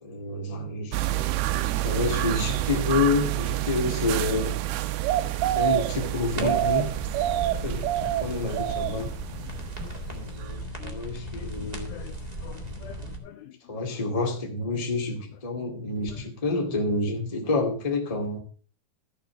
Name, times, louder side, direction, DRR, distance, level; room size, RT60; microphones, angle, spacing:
voice 1, 0.0-1.0 1.8-4.5 5.5-6.9 7.6-9.1 10.1-12.0 13.7-18.4, left 3 dB, 15° left, 2 dB, 1.3 m, -28 dB
sound 1, 0.9-10.2 10.4-10.5, right 14 dB, 80° right, 2.6 m, -27 dB
sound 2, 6.3-13.2, right 1 dB, 25° right, 0.9 m, -36 dB
voice 2, 7.4-8.2 8.7-10.3 10.8-11.0 11.3-12.2 12.4-14.0 16.1-16.2, left 11 dB, 75° left, 9 dB, 2.4 m, -47 dB
14.0 x 6.5 x 6.1 m, 0.39 s
omnidirectional pair, 4.7 m